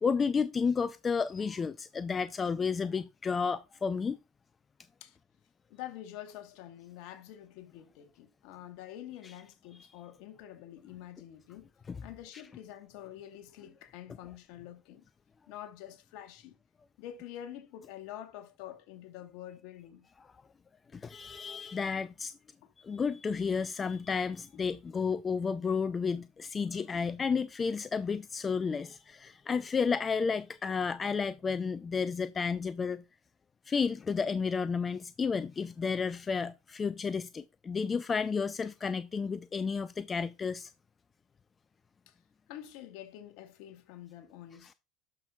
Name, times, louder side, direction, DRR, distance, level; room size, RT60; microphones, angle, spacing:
voice 1, 0.0-4.2 9.2-9.3 11.9-12.0 20.9-22.3 22.8-33.0 33.7-40.7, left 5 dB, 30° left, 0.4 m, -32 dB
voice 2, 5.7-11.7 12.0-15.0 15.5-16.5 17.0-20.1 22.6-22.7 42.1-42.2 42.5-44.7, left 12 dB, 65° left, 1.1 m, -47 dB
11.5 x 6.0 x 2.3 m
hypercardioid pair, 75°, 0 cm